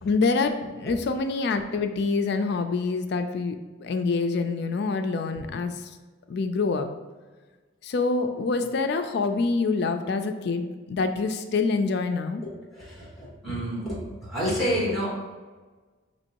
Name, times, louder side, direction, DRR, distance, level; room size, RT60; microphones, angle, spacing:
voice 1, 0.0-5.9 6.3-6.9 7.8-12.4, left 4 dB, 55° left, 7 dB, 0.3 m, -26 dB
voice 2, 12.7-15.1, equal, ahead, -5 dB, 1.2 m, -29 dB
5.2 x 3.0 x 2.8 m, 1.3 s
head